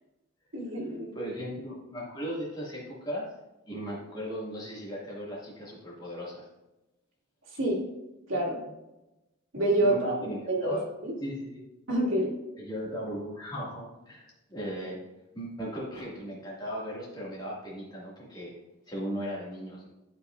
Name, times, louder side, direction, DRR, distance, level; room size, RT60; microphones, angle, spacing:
voice 1, 0.5-1.3 7.5-7.8 8.3-8.6 9.5-10.1 10.5-10.8 11.0-11.2 11.9-12.3, right 1 dB, 70° right, -4 dB, 2.5 m, -27 dB
voice 2, 1.1-3.3 3.7-6.5 9.8-10.8 11.2-11.6 12.6-15.0 15.3-18.5 18.9-19.9, equal, 20° left, -5 dB, 2.2 m, -37 dB
11.5 x 5.4 x 2.6 m, 0.97 s
head